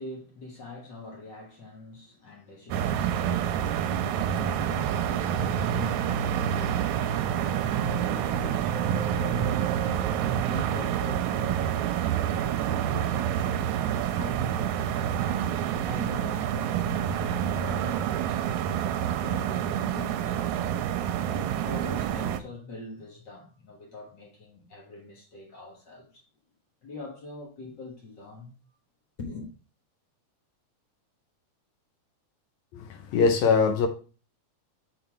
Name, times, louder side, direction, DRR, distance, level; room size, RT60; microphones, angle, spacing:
voice 1, 0.0-9.8 10.2-15.2 15.8-20.6 21.3-26.2 26.8-28.5 29.2-29.5, left 3 dB, 50° left, 1.5 m, -44 dB
sound 1, 2.7-22.4, right 9 dB, 80° right, 1.9 m, -28 dB
voice 2, 32.7-33.9, left 5 dB, 75° left, 1.9 m, -22 dB
5.6 x 4.0 x 5.8 m
omnidirectional pair, 3.5 m